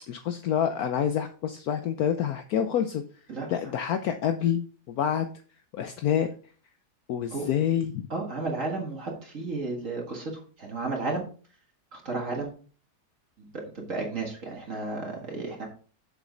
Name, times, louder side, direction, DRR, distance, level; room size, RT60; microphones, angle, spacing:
voice 1, 0.1-3.0 3.5-4.6 4.9-5.3 5.7-6.3 7.1-8.1, left 9 dB, 70° left, 7 dB, 1.1 m, -27 dB
voice 2, 8.1-11.2 11.9-12.5 13.4-15.7, right 3 dB, 50° right, 0 dB, 2.0 m, -33 dB
7.3 x 7.2 x 3.8 m, 0.41 s
omnidirectional pair, 1.7 m